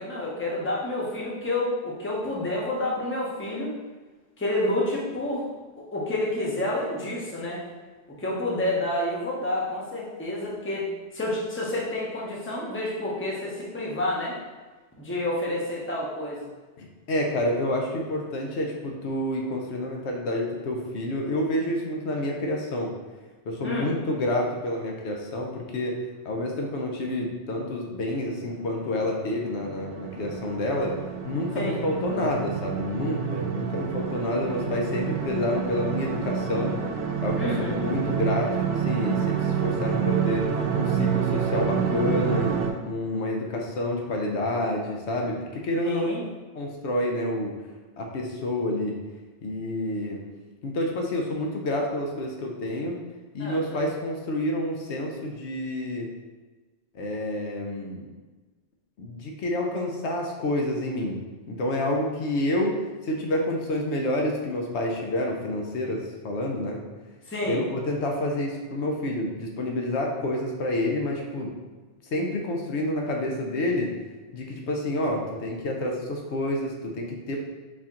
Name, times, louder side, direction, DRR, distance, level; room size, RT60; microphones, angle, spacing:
voice 1, 0.0-3.7 4.4-5.5 5.9-7.6 8.2-10.9 11.1-14.3 15.0-16.5 23.6-23.9 31.5-31.8 37.4-37.9 45.8-46.2 53.4-53.9 67.3-67.6, left 1 dB, 15° left, -4 dB, 0.7 m, -29 dB
voice 2, 16.8-22.9 23.5-31.0 31.2-36.8 37.2-42.5 42.9-46.1 46.5-47.5 48.0-49.0 49.4-50.2 50.6-53.0 53.3-56.1 56.9-58.1 59.0-61.2 61.5-66.8 67.4-71.6 72.1-73.9 74.3-77.4, left 1 dB, 75° left, 0 dB, 0.9 m, -28 dB
sound 1, 28.6-42.7, right 7 dB, 75° right, 0.9 m, -28 dB
4.2 x 2.8 x 3.6 m, 1.3 s
omnidirectional pair, 1.2 m